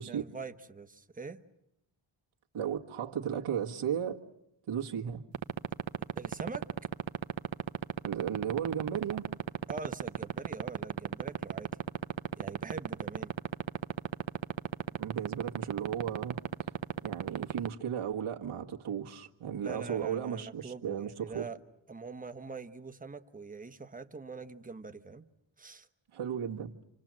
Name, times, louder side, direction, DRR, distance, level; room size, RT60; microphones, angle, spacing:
voice 1, 0.0-1.4 6.1-6.7 9.7-11.8 12.4-13.3 19.6-21.6 21.9-25.2 25.6-25.9, right 4 dB, 15° right, 1.0 m, -44 dB
voice 2, 2.5-4.2 4.7-5.2 8.0-9.3 15.0-16.4 17.0-21.5 26.1-26.7, right 8 dB, 85° right, 1.7 m, -35 dB
sound 1, 5.3-17.7, right 9 dB, 65° right, 1.0 m, -31 dB
28.5 x 26.0 x 7.5 m
wide cardioid pair, 145°, 48 cm